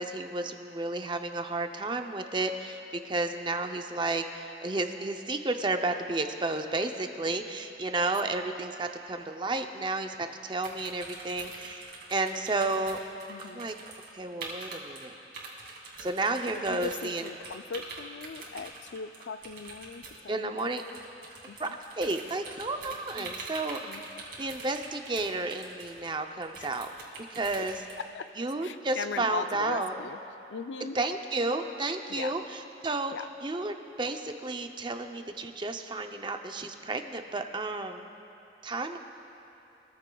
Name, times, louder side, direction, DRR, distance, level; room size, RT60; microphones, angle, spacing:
voice 1, 0.0-13.0 13.5-13.7 14.1-15.1 16.0-17.2 20.3-20.8 21.6-21.7 22.0-23.9 24.4-26.9 27.3-27.7 28.4-30.0 30.9-33.1 33.4-38.1 38.6-39.0, right 2 dB, 25° right, 6 dB, 0.6 m, -32 dB
sound 1, 10.6-14.1 14.4-15.1 15.3-28.0, right 3 dB, 65° right, 2.4 m, -44 dB
voice 2, 13.3-13.7 16.5-20.7 21.5-21.8 23.2-23.4 23.9-24.2 26.6-26.7 27.6-27.7 28.0-28.3 28.6-30.2 30.5-31.0 32.1-32.3 33.1-33.3, left 5 dB, 85° left, 11 dB, 0.4 m, -39 dB
23.5 x 14.0 x 2.3 m, 3.0 s
head